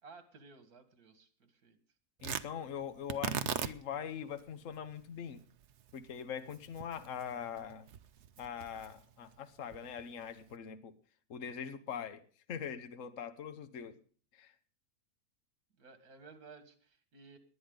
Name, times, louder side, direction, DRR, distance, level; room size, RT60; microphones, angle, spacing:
voice 1, 0.0-1.8 13.7-14.0 15.8-17.4, right 4 dB, 80° right, 9 dB, 2.4 m, -56 dB
voice 2, 2.2-5.4 5.9-7.9 8.4-10.9 11.3-12.2 12.5-13.9 14.3-14.5, left 8 dB, 60° left, 10 dB, 1.4 m, -42 dB
Tearing, 2.2-10.6, right 8 dB, 55° right, 0.9 m, -42 dB
19.0 x 11.0 x 3.9 m, 0.42 s
omnidirectional pair, 1.6 m